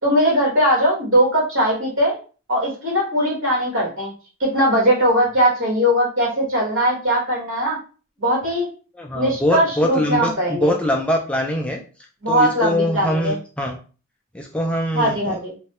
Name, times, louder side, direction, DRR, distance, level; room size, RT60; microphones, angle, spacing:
voice 1, 0.0-2.2 2.5-4.1 4.4-7.8 8.2-8.7 9.1-10.7 12.2-13.4 14.9-15.5, equal, 75° right, -3 dB, 1.6 m, -19 dB
voice 2, 9.0-11.8 12.3-13.8 14.3-15.4, left 1 dB, 5° left, 0 dB, 0.3 m, -23 dB
3.1 x 2.2 x 2.9 m, 0.36 s
head